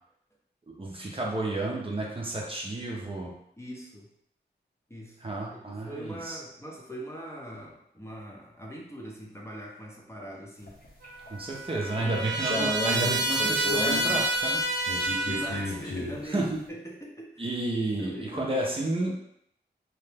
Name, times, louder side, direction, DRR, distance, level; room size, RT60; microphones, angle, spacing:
voice 1, 0.7-3.3 5.2-6.4 11.3-14.6 16.3-16.6 17.4-19.1, right 2 dB, 30° right, -2 dB, 0.5 m, -31 dB
voice 2, 3.6-4.1 4.9-5.2 5.5-10.8 11.7-12.3 15.3-17.5 17.9-18.6, equal, 15° left, -3 dB, 0.6 m, -41 dB
sound 1, 10.7-11.3 11.8-14.2 14.9-16.2, left 2 dB, 55° left, 0.7 m, -32 dB
Trumpet, 11.0-15.7, right 2 dB, 85° right, 0.4 m, -29 dB
2.8 x 2.1 x 3.3 m, 0.74 s
wide cardioid pair, 85°, 18 cm